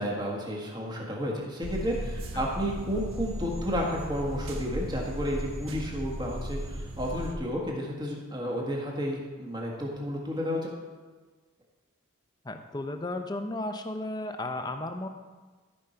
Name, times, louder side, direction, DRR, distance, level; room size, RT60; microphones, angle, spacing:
voice 1, 0.0-10.7, equal, 20° right, -2 dB, 1.6 m, -32 dB
sound 1, 1.6-7.3, equal, 85° right, 1.2 m, -36 dB
voice 2, 12.4-15.1, left 2 dB, 20° left, 6 dB, 0.6 m, -34 dB
14.0 x 5.4 x 4.5 m, 1.3 s
head